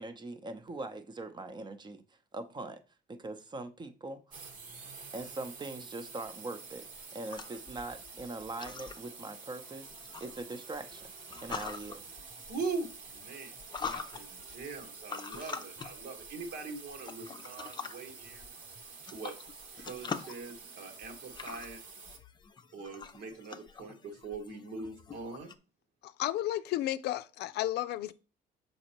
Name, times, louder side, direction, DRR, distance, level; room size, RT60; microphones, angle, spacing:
voice 1, 0.0-2.0 2.3-2.8 3.1-4.5 5.1-6.9 7.1-11.1 11.4-12.0, right 2 dB, 25° right, 0.8 m, -42 dB
sound 1, 4.3-22.2, right 5 dB, 50° right, 1.2 m, -49 dB
sound 2, 6.6-25.5, left 5 dB, 25° left, 0.6 m, -45 dB
voice 2, 12.5-18.5 19.0-19.4 19.8-21.8 22.7-25.5, right 4 dB, 75° right, 1.6 m, -42 dB
voice 3, 26.0-28.1, left 14 dB, 75° left, 0.5 m, -33 dB
6.3 x 5.3 x 3.0 m
cardioid pair, 110°, 17 cm